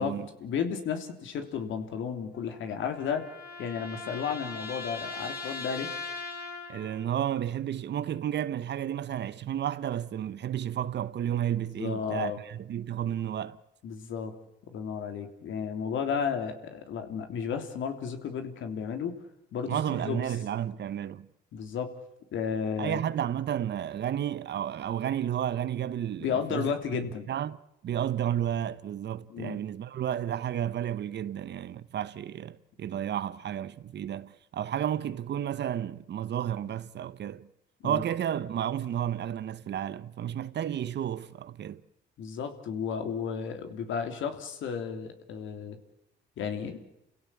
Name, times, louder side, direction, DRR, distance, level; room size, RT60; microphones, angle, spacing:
voice 1, 0.0-3.3 3.6-5.9 11.8-12.4 13.8-14.3 14.7-19.2 19.5-20.2 21.5-21.9 22.3-23.0 26.2-27.3 29.3-29.6 37.8-38.0 42.2-45.8 46.4-46.8, left 7 dB, 80° left, 3.4 m, -33 dB
sound 1, 2.3-7.1, left 3 dB, 50° left, 5.9 m, -40 dB
voice 2, 6.7-13.6 19.7-21.3 22.8-26.7 27.3-27.6 27.8-37.5 37.8-41.8, right 10 dB, 60° right, 1.1 m, -32 dB
29.5 x 17.0 x 8.6 m
cardioid pair, 90°, 20 cm